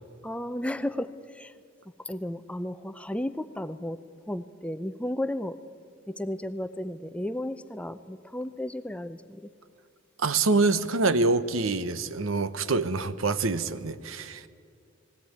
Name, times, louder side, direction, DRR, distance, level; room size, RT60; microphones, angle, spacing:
voice 1, 0.2-1.6 2.0-4.0 4.3-5.6 6.1-9.4, left 1 dB, 5° left, 11 dB, 0.5 m, -33 dB
voice 2, 10.2-14.5, right 3 dB, 80° right, 13 dB, 0.9 m, -25 dB
19.5 x 17.0 x 9.4 m, 2.3 s
head